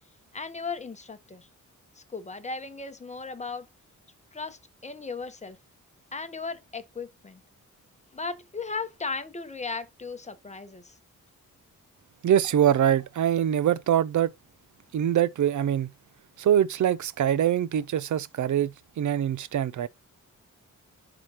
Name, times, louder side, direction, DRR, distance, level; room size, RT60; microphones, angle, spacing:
voice 1, 0.3-1.5 2.0-3.7 4.3-5.6 6.1-7.4 8.1-11.0, left 4 dB, 20° left, 1.0 m, -36 dB
voice 2, 12.2-14.3 14.9-15.9 16.4-19.9, right 10 dB, 65° right, 0.6 m, -24 dB
11.0 x 3.9 x 2.9 m
wide cardioid pair, 125°, 32 cm